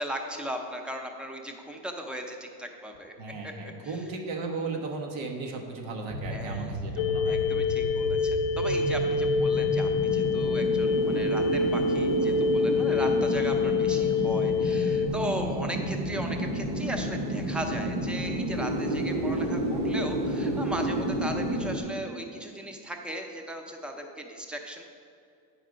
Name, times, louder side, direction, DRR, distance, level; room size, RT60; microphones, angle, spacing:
voice 1, 0.0-3.1 3.4-4.1 6.3-7.0 7.3-24.8, equal, ahead, 3 dB, 0.6 m, -37 dB
voice 2, 3.2-7.4, right 3 dB, 70° right, 2 dB, 1.4 m, -35 dB
sound 1, 6.1-21.8, right 1 dB, 35° right, 1.1 m, -31 dB
sound 2, 7.0-15.1, left 4 dB, 80° left, 0.6 m, -26 dB
8.4 x 5.6 x 5.1 m, 2.4 s
cardioid pair, 115°, 48 cm